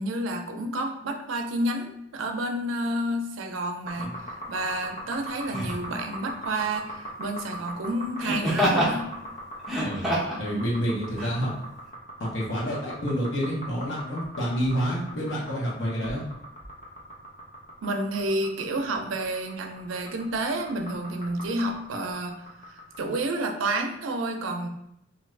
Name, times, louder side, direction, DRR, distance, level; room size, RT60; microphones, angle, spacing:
voice 1, 0.0-4.2 4.5-9.1 17.8-24.7, right 1 dB, 90° right, 4 dB, 0.4 m, -30 dB
sound 1, 3.9-23.2, equal, 40° left, 0.8 m, -40 dB
Laughter, 4.0-4.2 5.5-5.9 8.2-9.0 9.6-10.4 11.2-11.3, equal, ahead, 0.6 m, -26 dB
voice 2, 10.4-11.5 12.2-16.2, equal, 75° left, -5 dB, 1.1 m, -28 dB
2.6 x 2.4 x 3.2 m, 0.79 s
head